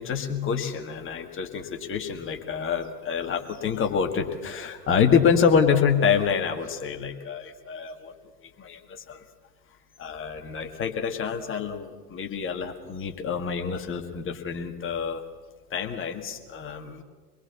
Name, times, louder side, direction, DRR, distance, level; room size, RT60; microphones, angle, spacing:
voice 1, 0.0-8.1 8.6-9.2 10.0-15.2 15.7-17.0, left 6 dB, 25° left, 4 dB, 2.2 m, -27 dB
25.5 x 21.0 x 7.2 m, 1.4 s
figure-of-eight pair, 90°, 49 cm